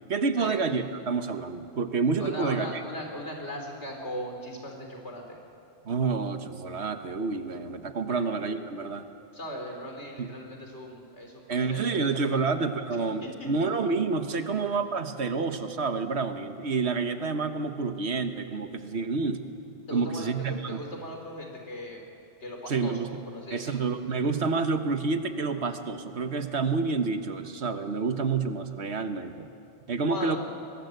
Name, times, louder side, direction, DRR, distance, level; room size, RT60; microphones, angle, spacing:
voice 1, 0.1-2.8 5.8-9.0 10.2-10.3 11.5-19.4 19.9-20.8 22.7-23.1 23.5-29.5 29.9-30.4, right 4 dB, 70° right, 8 dB, 1.5 m, -28 dB
voice 2, 2.2-5.4 8.1-8.2 9.3-12.4 12.9-13.5 19.9-22.0 22.4-23.0 23.3-23.9 30.1-30.4, left 1 dB, 85° left, 2 dB, 4.0 m, -38 dB
24.0 x 20.0 x 8.0 m, 2.5 s
omnidirectional pair, 1.1 m